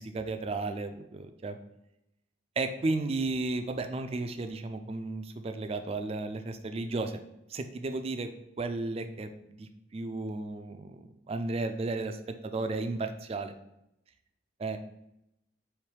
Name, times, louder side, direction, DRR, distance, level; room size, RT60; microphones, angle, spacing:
voice 1, 0.0-1.6 2.6-7.2 7.5-8.3 8.6-13.5 14.6-14.8, right 3 dB, 30° right, 8 dB, 0.3 m, -34 dB
4.5 x 3.1 x 3.3 m, 0.84 s
head